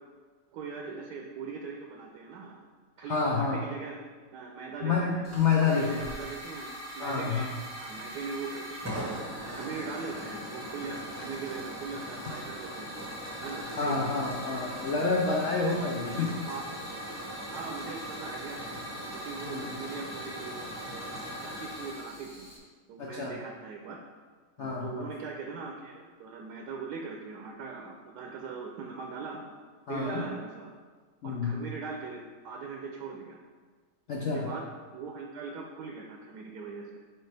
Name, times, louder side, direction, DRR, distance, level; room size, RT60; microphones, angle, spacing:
voice 1, 0.5-2.6 3.0-4.0 4.3-5.3 5.6-7.5 7.8-9.1 9.5-12.9 13.4-14.1 15.8-16.6 17.5-18.8 19.1-21.1 21.4-22.5 22.9-24.0 24.6-29.4 29.9-30.7 31.2-33.4 34.3-36.9, right 4 dB, 75° right, 1 dB, 1.1 m, -40 dB
voice 2, 3.1-3.6 4.8-6.0 7.0-7.5 13.8-16.3 19.5-19.7 23.0-23.4 24.6-25.1 29.9-30.2 31.2-31.6 34.1-34.5, left 4 dB, 85° left, -2 dB, 0.6 m, -28 dB
Hiss / Fire, 5.2-22.6, equal, 15° right, 0.6 m, -40 dB
6.4 x 4.5 x 3.3 m, 1.5 s
omnidirectional pair, 1.9 m